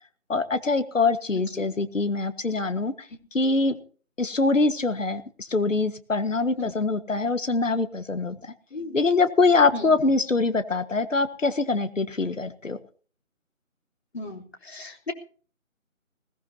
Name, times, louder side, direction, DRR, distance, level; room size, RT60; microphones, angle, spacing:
voice 1, 0.3-2.9 3.3-3.7 4.2-8.4 8.9-12.8, left 3 dB, 65° left, 10 dB, 1.7 m, -24 dB
voice 2, 1.3-1.7 6.6-6.7 8.7-9.0 9.7-9.9 14.1-15.1, left 3 dB, 50° left, 1 dB, 3.6 m, -36 dB
20.5 x 18.5 x 2.9 m, 0.42 s
figure-of-eight pair, 175°, 41 cm